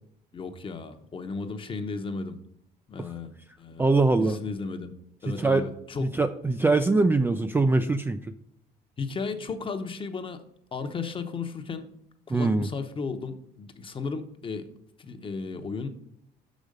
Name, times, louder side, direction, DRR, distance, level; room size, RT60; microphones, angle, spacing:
voice 1, 0.3-2.4 2.9-3.8 4.2-4.9 5.2-6.1 9.0-10.4 10.7-11.9 12.3-14.7 15.0-15.9, left 4 dB, 30° left, 8 dB, 0.9 m, -34 dB
voice 2, 3.8-4.4 5.4-5.6 6.0-8.3 12.3-12.7, right 3 dB, 15° right, 8 dB, 0.3 m, -23 dB
6.2 x 5.1 x 6.5 m, 0.73 s
cardioid pair, 110°, 17 cm